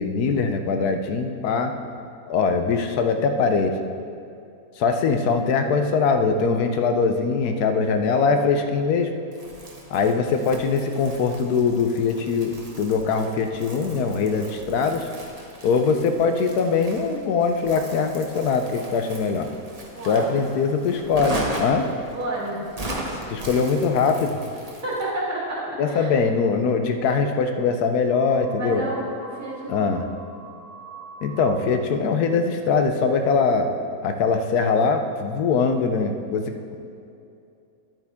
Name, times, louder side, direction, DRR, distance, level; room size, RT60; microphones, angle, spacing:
voice 1, 0.0-1.7 2.3-3.7 4.8-9.1 9.9-15.1 15.6-19.5 20.1-21.9 23.3-24.4 25.8-28.8 29.7-30.0 31.2-33.7 34.0-36.8, left 5 dB, 90° left, 6 dB, 1.3 m, -22 dB
Crumpling crinkling, 9.3-25.1, right 1 dB, 30° right, 1.1 m, -37 dB
voice 2, 19.9-20.5 22.1-22.8 24.8-26.1 28.6-29.9, right 1 dB, 10° right, -6 dB, 1.8 m, -30 dB
sound 1, 22.3-24.7 25.3-25.4 27.1-27.2 27.4-31.7, right 2 dB, 35° left, 2.3 m, -44 dB
11.0 x 8.8 x 3.6 m, 2.6 s
omnidirectional pair, 1.6 m